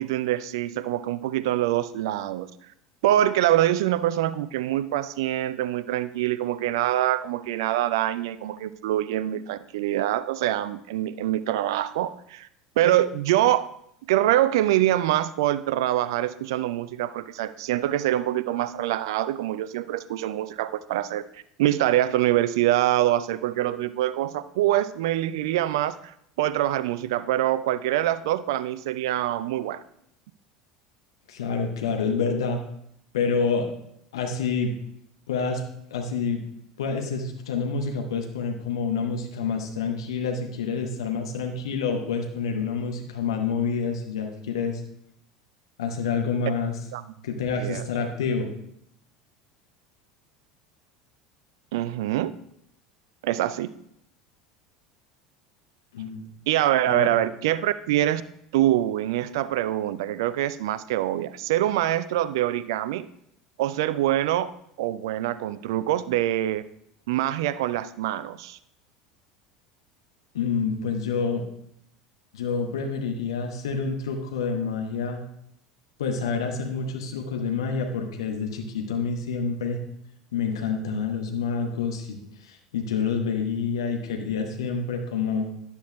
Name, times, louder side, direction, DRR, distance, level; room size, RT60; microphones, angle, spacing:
voice 1, 0.0-2.5 3.0-12.5 12.8-13.7 14.1-21.2 21.6-29.8 46.9-47.0 47.6-47.8 51.7-52.3 53.2-53.7 56.5-58.2 58.5-63.1 63.6-64.5 64.8-66.6 67.1-68.6, right 13 dB, 60° right, 15 dB, 0.3 m, -24 dB
voice 2, 31.3-32.6 33.1-33.7 34.1-34.7 35.3-35.6 35.9-36.4 36.8-44.8 45.8-46.8 47.2-48.5 55.9-56.3 56.9-57.1 70.3-71.4 72.3-75.2 76.0-79.8 80.3-85.5, left 5 dB, 65° left, 3 dB, 0.9 m, -28 dB
10.0 x 8.1 x 2.2 m, 0.73 s
figure-of-eight pair, 75°, 3 cm